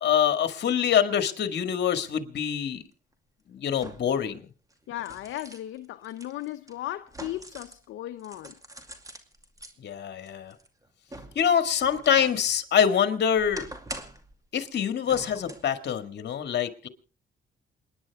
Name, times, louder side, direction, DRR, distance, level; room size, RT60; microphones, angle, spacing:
voice 1, 0.0-2.8 3.5-4.4 9.8-10.5 11.4-13.7 14.5-16.9, left 8 dB, 60° left, 1.9 m, -25 dB
sound 1, 2.4-2.5 3.7-4.2 4.7-7.8 8.2-9.7 10.3-12.4 12.8-14.3 15.0-15.7 16.2-16.3, right 1 dB, 15° right, 2.3 m, -44 dB
voice 2, 4.9-8.6, left 14 dB, 75° left, 0.7 m, -36 dB
28.0 x 10.5 x 3.5 m
cardioid pair, 90°, 20 cm